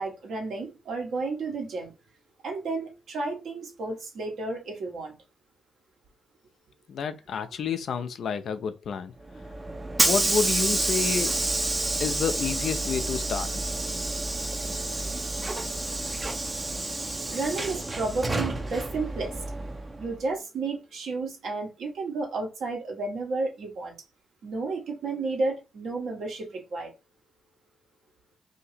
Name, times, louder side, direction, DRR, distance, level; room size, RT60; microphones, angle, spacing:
voice 1, 0.0-1.9 2.4-5.1 17.3-19.7 20.0-23.9 24.4-26.9, right 3 dB, 70° right, 1.3 m, -32 dB
voice 2, 6.9-9.1 10.1-11.4 12.0-13.6, left 6 dB, 70° left, 0.5 m, -29 dB
Hiss / Sliding door, 9.3-20.1, right 2 dB, 25° right, 0.7 m, -29 dB
2.8 x 2.7 x 4.2 m
supercardioid pair, 55°, 0 cm